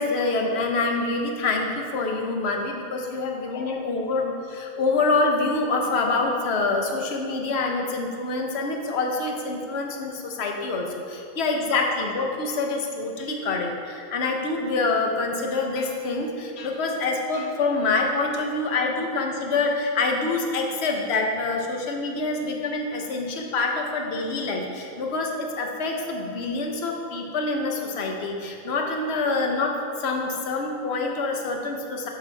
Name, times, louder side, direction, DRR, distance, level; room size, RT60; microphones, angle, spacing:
voice 1, 0.0-32.1, left 3 dB, 55° left, 2 dB, 1.1 m, -26 dB
11.5 x 5.6 x 3.4 m, 2.5 s
omnidirectional pair, 1.5 m